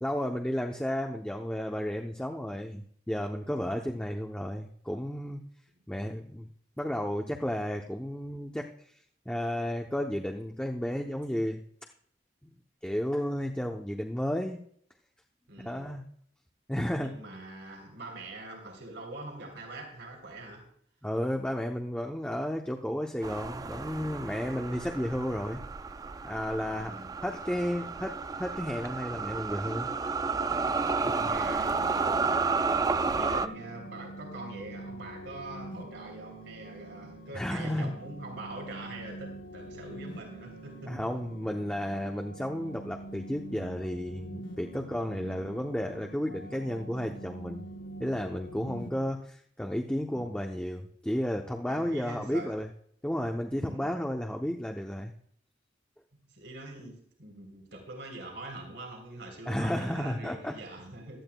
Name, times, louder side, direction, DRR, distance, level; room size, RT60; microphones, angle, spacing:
voice 1, 0.0-5.4 5.9-6.5 6.8-8.7 9.3-11.6 12.8-14.6 15.6-16.0 16.7-17.2 21.0-25.6 26.2-29.9 31.2-31.4 37.0-37.9 40.9-47.6 48.0-52.7 53.0-55.1 59.5-60.5, equal, 5° left, 1 dB, 0.7 m, -33 dB
voice 2, 15.5-15.9 17.0-20.6 26.5-27.1 31.0-31.8 32.6-41.1 45.0-45.4 48.5-49.2 50.1-50.4 51.7-52.6 53.6-53.9 56.1-61.2, right 2 dB, 85° right, 2 dB, 3.5 m, -44 dB
sound 1, 23.2-33.5, right 4 dB, 20° right, 0.3 m, -31 dB
sound 2, 31.4-48.9, right 1 dB, 85° left, 1.0 m, -45 dB
17.0 x 12.5 x 2.3 m, 0.62 s
head